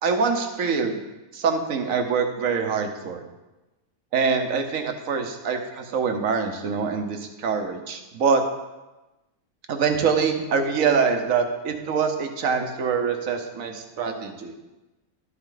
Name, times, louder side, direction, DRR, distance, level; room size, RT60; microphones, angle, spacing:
voice 1, 0.0-1.0 1.3-3.2 4.1-8.4 9.7-14.5, right 5 dB, 60° right, 5 dB, 1.4 m, -24 dB
12.0 x 8.1 x 3.9 m, 1.0 s
omnidirectional pair, 1.7 m